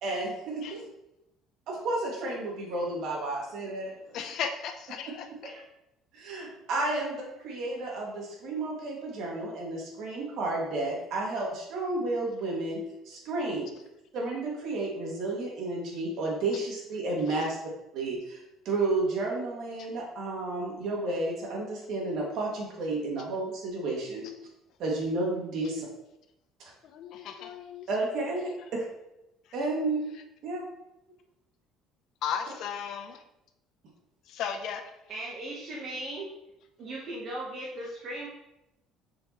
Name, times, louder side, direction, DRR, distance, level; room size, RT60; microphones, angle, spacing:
voice 1, 0.0-0.9 1.7-4.2 6.1-12.8 13.1-13.7 14.1-17.6 17.9-24.3 24.8-25.9 27.9-28.8 29.5-30.0 30.4-30.6, right 2 dB, 60° right, -2 dB, 2.0 m, -32 dB
voice 2, 4.1-5.3 17.3-17.4 26.9-27.9 32.2-33.2 34.3-34.8, left 7 dB, 55° left, 7 dB, 0.7 m, -35 dB
voice 3, 35.1-36.3 36.8-38.3, right 1 dB, 40° right, -4 dB, 1.1 m, -37 dB
6.9 x 5.1 x 3.0 m, 0.90 s
cardioid pair, 145°, 0 cm